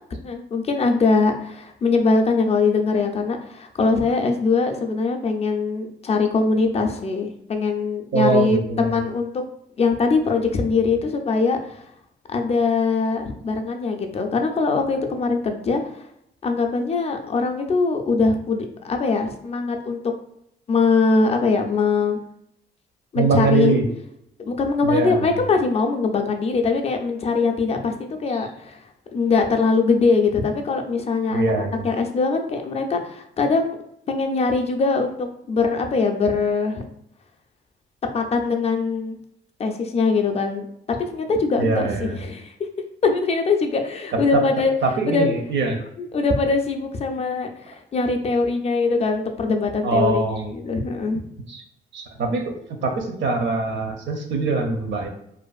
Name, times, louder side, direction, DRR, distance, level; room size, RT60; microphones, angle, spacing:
voice 1, 0.2-9.4 9.8-11.8 12.3-16.0 16.4-20.0 20.7-22.2 23.1-23.7 24.4-27.9 28.2-28.8 29.1-33.8 34.1-36.8 38.1-39.2 39.6-40.7 41.1-42.5 43.0-44.7 45.1-45.3 46.0-50.2 50.5-51.2, left 4 dB, 30° left, 5 dB, 0.4 m, -22 dB
voice 2, 8.1-9.0 23.2-23.9 24.8-25.4 28.3-28.4 31.3-31.9 41.6-42.2 44.3-44.4 44.8-45.8 49.8-50.5 51.5-51.6 51.9-52.4 52.8-55.1, right 3 dB, 65° right, 3 dB, 0.5 m, -23 dB
2.5 x 2.4 x 2.3 m, 0.75 s
cardioid pair, 90°, 20 cm